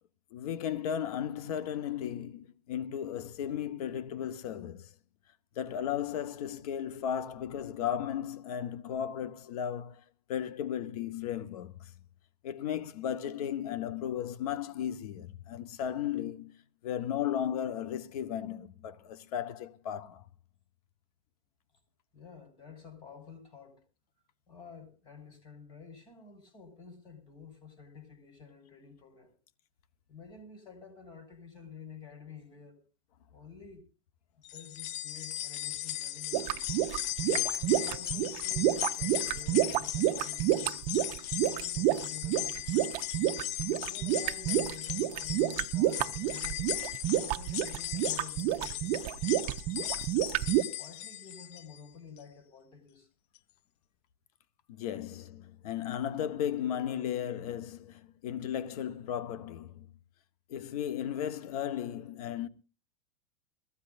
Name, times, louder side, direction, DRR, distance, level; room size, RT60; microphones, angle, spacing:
voice 1, 0.3-4.9 5.5-10.0 10.3-11.9 12.4-16.6 16.8-20.2 54.7-59.9 60.5-62.5, left 9 dB, 75° left, 1.3 m, -35 dB
voice 2, 22.1-23.8 24.5-29.3 30.1-32.8 33.3-33.8 34.5-36.7 37.6-40.9 41.4-42.9 43.8-46.7 47.1-49.4 50.4-53.1, left 6 dB, 25° left, 5.1 m, -50 dB
sound 1, 34.4-51.8 52.2-52.3 53.4-53.5, left 13 dB, 45° left, 0.6 m, -37 dB
sound 2, 36.3-50.6, right 14 dB, 40° right, 0.8 m, -29 dB
21.5 x 15.5 x 2.6 m
supercardioid pair, 155°, 20 cm